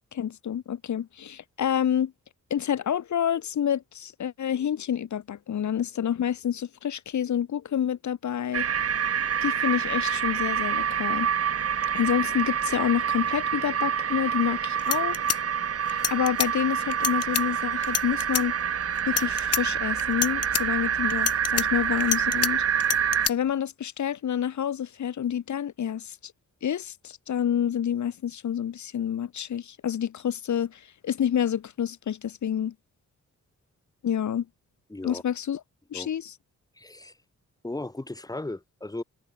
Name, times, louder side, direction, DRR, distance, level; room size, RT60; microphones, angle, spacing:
voice 1, 0.1-2.1 2.5-8.6 9.4-11.3 11.9-15.2 15.9-18.5 19.1-22.6 23.3-26.3 26.6-32.7 34.0-34.5 35.0-35.6 35.9-36.3, left 9 dB, 75° left, 2.6 m, -28 dB
sound 1, 8.5-23.3, right 8 dB, 55° right, 2.1 m, -27 dB
sound 2, 14.5-14.6 14.8-16.5 16.9-17.4 17.8-18.4 19.0-19.6 20.0-20.6 21.1-22.5 22.8-23.3, left 8 dB, 55° left, 1.6 m, -27 dB
voice 2, 34.9-35.2 35.9-36.1 36.8-37.1 37.6-39.0, left 2 dB, 10° left, 5.7 m, -36 dB
wide cardioid pair, 175°, 30 cm